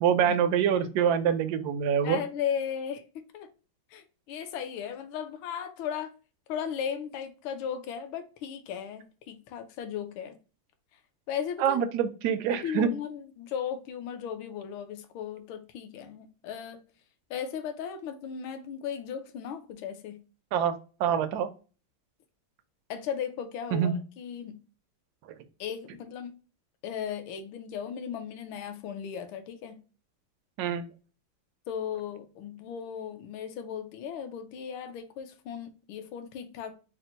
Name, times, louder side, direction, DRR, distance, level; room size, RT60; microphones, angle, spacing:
voice 1, 0.0-2.2 11.6-12.9 20.5-20.7 21.0-21.5 23.7-23.9 30.6-30.8, right 8 dB, 80° right, 0.8 m, -25 dB
voice 2, 2.0-3.5 3.9-6.1 6.5-10.4 11.3-11.8 12.5-16.8 17.3-20.2 22.9-24.6 25.6-26.4 26.8-29.8 31.7-36.8, left 8 dB, 75° left, 1.4 m, -36 dB
4.3 x 2.1 x 3.8 m
omnidirectional pair, 2.3 m